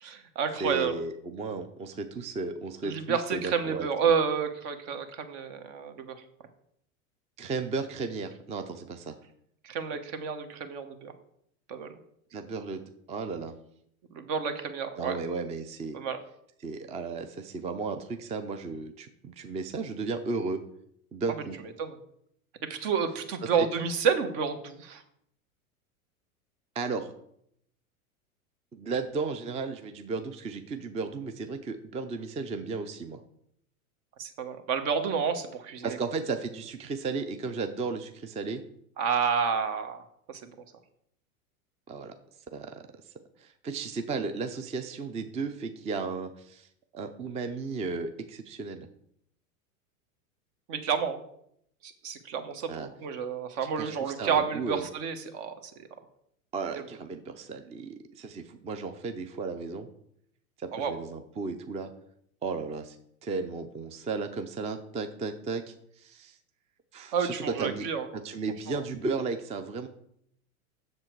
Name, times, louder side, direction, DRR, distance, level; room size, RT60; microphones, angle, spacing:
voice 1, 0.0-1.0 2.8-6.2 9.6-11.1 11.7-11.9 14.1-15.2 15.9-16.2 21.8-21.9 22.7-25.0 34.2-36.0 39.0-40.0 40.3-40.5 50.7-51.2 51.8-55.7 60.7-60.9 67.1-68.1 68.7-68.8, right 6 dB, 55° right, 8 dB, 1.4 m, -30 dB
voice 2, 0.6-3.9 7.4-9.2 12.3-12.8 13.1-13.5 15.0-16.0 16.6-20.6 21.1-21.6 23.4-23.7 26.8-27.1 28.7-33.2 35.8-38.6 41.9-42.1 42.5-43.1 43.4-46.7 46.9-48.9 52.7-52.9 53.8-54.8 56.5-59.9 60.6-61.9 62.4-63.0 63.2-66.4 66.9-67.9 68.1-69.9, right 4 dB, 15° right, 8 dB, 0.5 m, -34 dB
7.4 x 6.7 x 4.6 m, 0.71 s
hypercardioid pair, 110°, 43 cm